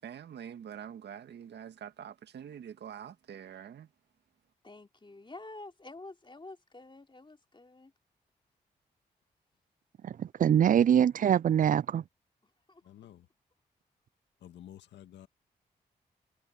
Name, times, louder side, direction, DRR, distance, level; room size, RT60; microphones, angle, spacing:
voice 1, 0.0-3.9, right 9 dB, 75° right, 1.9 m, -45 dB
voice 2, 4.6-7.9 12.7-13.1, left 2 dB, 25° left, 3.2 m, -49 dB
voice 3, 10.4-12.0, right 9 dB, 50° right, 0.4 m, -23 dB
voice 4, 12.8-13.3 14.4-15.3, left 11 dB, 85° left, 1.9 m, -51 dB
supercardioid pair, 40°, 18 cm